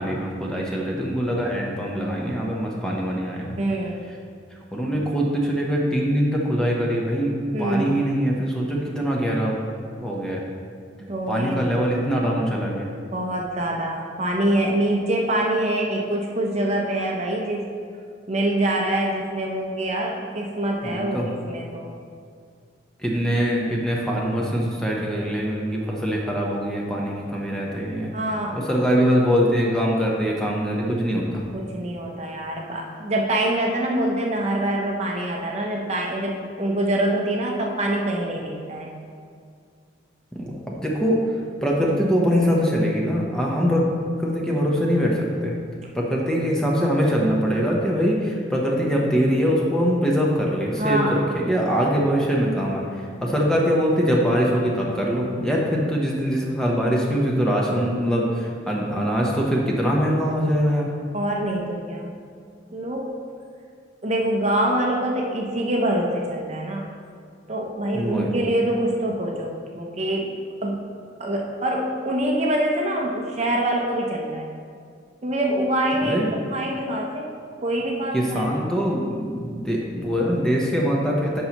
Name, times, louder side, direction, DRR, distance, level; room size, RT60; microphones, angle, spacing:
voice 1, 0.0-3.6 4.7-7.3 7.6-10.4 11.3-12.9 20.8-21.3 23.0-28.1 28.5-31.5 40.3-43.8 44.2-45.5 45.9-60.9 67.9-68.3 76.0-76.3 78.1-81.4, equal, 5° left, -3 dB, 0.8 m, -23 dB
voice 2, 3.6-4.0 7.5-8.0 11.0-11.7 13.1-17.7 18.3-21.9 28.1-28.6 31.5-38.9 50.8-51.3 61.1-62.1 62.7-63.2 64.0-66.8 67.5-70.3 70.6-70.9 71.2-74.5 75.2-76.3 76.5-77.3 77.6-78.5, right 1 dB, 35° right, 0 dB, 0.7 m, -25 dB
10.5 x 5.4 x 3.0 m, 2.2 s
head